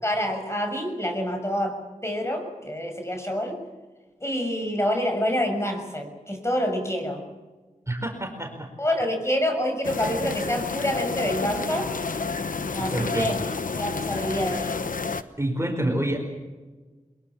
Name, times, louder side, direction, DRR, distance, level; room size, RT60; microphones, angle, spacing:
voice 1, 0.0-1.8 2.0-3.6 4.2-7.2 8.8-11.9 12.7-13.3 13.8-14.8, equal, 20° left, 4 dB, 6.5 m, -27 dB
voice 2, 7.9-8.7 12.8-13.5 15.4-16.2, right 1 dB, 20° right, 3 dB, 4.8 m, -28 dB
sound 1, 9.8-15.2, left 4 dB, 85° left, 1.1 m, -30 dB
23.5 x 22.0 x 7.3 m, 1.3 s
wide cardioid pair, 60°, 14 cm